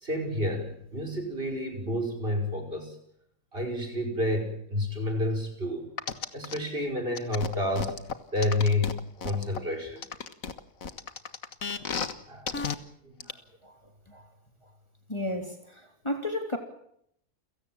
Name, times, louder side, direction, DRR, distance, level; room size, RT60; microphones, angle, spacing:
voice 1, 0.0-2.9 3.5-5.9 6.3-8.0 8.3-9.0 9.2-10.0 12.3-12.6 13.0-13.1, left 1 dB, 45° right, 5.6 m, -29 dB
sound 1, 6.0-6.6 7.1-9.6 10.0-12.1 12.5-12.7 13.2-13.3, left 6 dB, 90° left, 1.9 m, -33 dB
voice 2, 15.1-16.6, left 1 dB, 20° left, 3.4 m, -33 dB
29.5 x 17.0 x 7.4 m
omnidirectional pair, 1.4 m